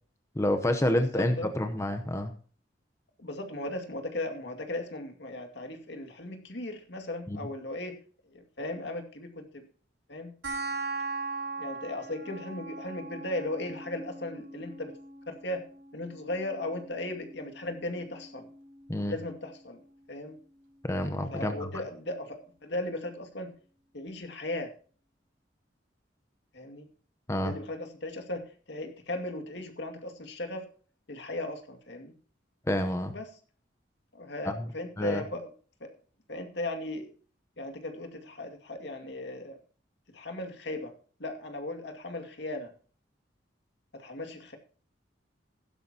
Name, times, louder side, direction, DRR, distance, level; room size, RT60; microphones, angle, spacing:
voice 1, 0.3-2.3 7.3-7.4 18.9-19.1 20.8-21.7 27.3-27.5 32.7-33.1 34.4-34.7 35.0-35.2, left 1 dB, 15° left, 7 dB, 0.9 m, -28 dB
voice 2, 0.9-1.5 3.2-8.0 8.3-9.7 10.1-10.3 11.6-14.9 15.3-15.6 15.9-18.5 19.1-19.8 20.1-20.4 21.3-23.5 23.9-24.7 26.5-26.9 27.4-30.7 31.1-32.1 33.1-33.3 34.1-35.5 35.8-35.9 36.3-37.1 37.6-39.6 40.1-40.9 41.2-42.7 43.9-44.6, left 1 dB, 65° left, 5 dB, 2.4 m, -37 dB
sound 1, 10.4-21.4, right 3 dB, 75° right, 4.8 m, -41 dB
15.5 x 12.0 x 2.9 m, 0.41 s
head